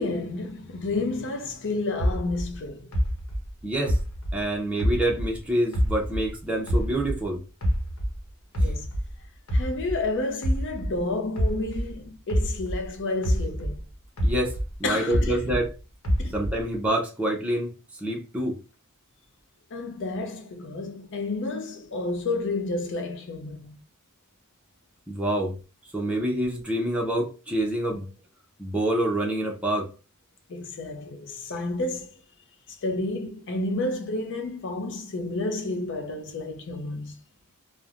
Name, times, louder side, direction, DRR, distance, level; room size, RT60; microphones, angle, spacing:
voice 1, 0.0-2.9 8.6-8.9 9.5-13.8 14.8-15.4 16.2-16.4 19.7-23.8 30.5-32.1 32.7-37.1, left 2 dB, 60° left, 0.6 m, -30 dB
sound 1, 2.0-5.4 5.7-8.2 8.5-12.9 13.2-15.7 16.0-16.8, equal, 80° left, 0.9 m, -26 dB
voice 2, 3.6-4.0 4.3-7.4 14.2-14.5 14.8-15.7 16.3-17.7 18.0-18.6 25.1-25.5 25.9-28.1 28.6-29.9, right 1 dB, 5° right, 0.5 m, -26 dB
3.0 x 2.1 x 2.4 m
head